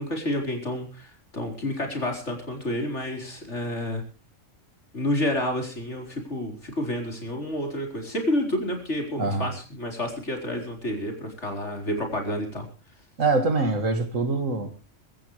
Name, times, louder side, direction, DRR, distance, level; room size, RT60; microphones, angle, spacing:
voice 1, 0.0-4.0 4.9-12.7, left 1 dB, 60° left, 3 dB, 4.9 m, -29 dB
voice 2, 9.2-9.5 13.2-14.7, right 3 dB, 80° right, 8 dB, 2.6 m, -24 dB
24.0 x 14.0 x 3.2 m, 0.34 s
omnidirectional pair, 1.3 m